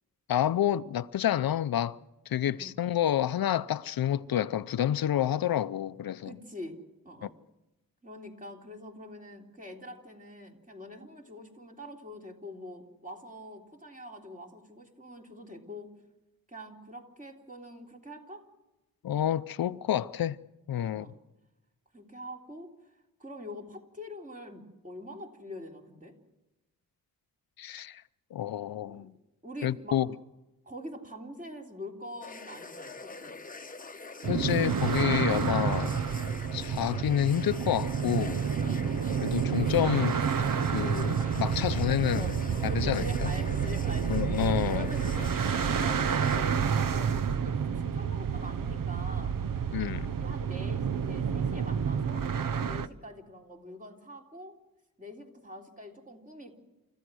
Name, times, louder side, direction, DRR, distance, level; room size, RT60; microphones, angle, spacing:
voice 1, 0.3-2.0 2.3-6.3 19.0-20.4 20.7-21.1 27.6-28.0 28.3-29.1 29.6-30.1 34.3-36.0 36.5-38.4 39.2-40.2 40.7-42.3 42.6-43.3 44.1-44.9 49.7-50.1, left 11 dB, 85° left, 0.6 m, -29 dB
voice 2, 2.5-2.8 6.2-6.8 7.0-7.4 8.0-15.9 16.5-18.4 20.8-21.1 21.9-22.7 23.2-26.1 28.9-29.1 29.4-30.0 30.6-33.3 38.4-38.9 41.5-44.2 44.7-45.3 45.6-49.4 50.2-52.2 52.6-54.6 55.0-56.6, equal, 25° right, 3.4 m, -44 dB
sound 1, 32.2-46.4, left 3 dB, 25° left, 1.0 m, -44 dB
sound 2, 34.2-52.9, right 7 dB, 70° right, 0.8 m, -29 dB
28.5 x 14.5 x 6.3 m
wide cardioid pair, 105°, 34 cm